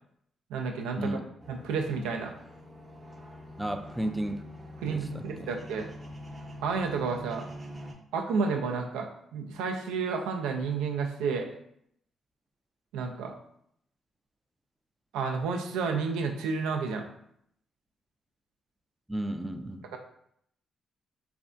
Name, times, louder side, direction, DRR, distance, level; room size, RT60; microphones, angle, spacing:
voice 1, 0.5-1.2 1.5-2.3 4.8-5.9 6.6-7.5 8.1-11.5 12.9-13.3 15.1-17.0 19.9-20.0, right 5 dB, 90° right, 3 dB, 0.3 m, -31 dB
sound 1, 1.4-7.9, equal, 30° right, 0.7 m, -45 dB
voice 2, 3.6-4.4 4.9-5.5 19.1-19.8, right 1 dB, 10° right, 6 dB, 0.3 m, -33 dB
3.2 x 2.2 x 2.5 m, 0.71 s
supercardioid pair, 60°, 0 cm